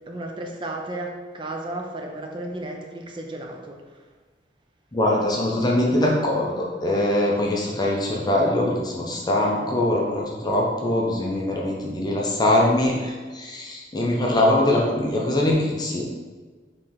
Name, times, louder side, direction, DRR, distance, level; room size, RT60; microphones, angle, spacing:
voice 1, 0.1-3.8, right 1 dB, 25° right, 2 dB, 0.5 m, -33 dB
voice 2, 4.9-16.0, left 1 dB, 25° left, -2 dB, 0.6 m, -22 dB
4.3 x 3.1 x 3.7 m, 1.4 s
head